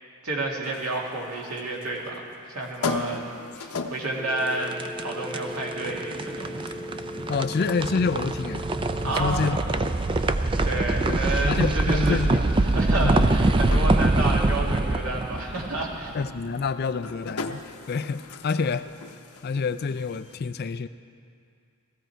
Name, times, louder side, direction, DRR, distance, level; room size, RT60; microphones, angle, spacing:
voice 1, 0.2-3.2 3.5-6.5 9.0-9.5 10.1-10.3 10.6-12.2 12.6-16.2, right 2 dB, 80° right, -2 dB, 2.1 m, -30 dB
sound 1, 0.6-20.4, left 4 dB, 90° left, 0.8 m, -40 dB
Telephone, 4.2-9.2, equal, 10° left, 1.0 m, -38 dB
sound 2, 4.4-16.5, right 2 dB, 25° right, 0.4 m, -24 dB
voice 2, 7.3-8.7 9.0-9.9 11.1-11.2 11.5-12.6 13.0-13.3 16.1-17.6 17.9-18.9 19.4-20.9, left 4 dB, 45° left, 12 dB, 0.4 m, -27 dB
16.5 x 15.0 x 4.5 m, 2.4 s
head